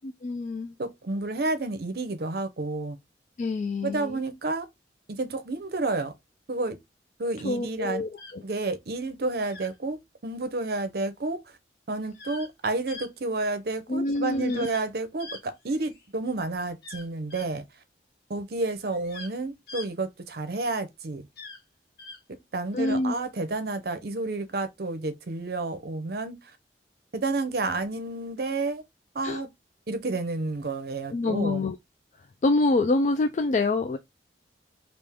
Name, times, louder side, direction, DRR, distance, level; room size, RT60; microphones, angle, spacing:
voice 1, 0.0-0.7 3.4-4.2 7.4-8.4 13.9-14.7 22.7-23.2 29.2-29.4 31.1-31.8 32.4-34.0, left 2 dB, 40° left, 0.3 m, -26 dB
voice 2, 0.8-3.0 3.8-4.7 5.1-6.1 6.5-6.8 7.2-8.0 8.4-11.4 11.9-17.6 18.3-21.3 22.3-26.4 27.1-28.8 29.1-29.5 29.9-31.7, right 2 dB, 60° right, 0.6 m, -30 dB
sound 1, 8.2-8.3 9.5-9.7 12.1-12.5 12.9-13.1 14.5-14.8 15.2-16.1 16.8-17.5 18.8-19.3 19.7-19.9 21.4-21.6 22.0-22.2, left 3 dB, 60° left, 0.9 m, -43 dB
3.4 x 2.4 x 3.5 m
head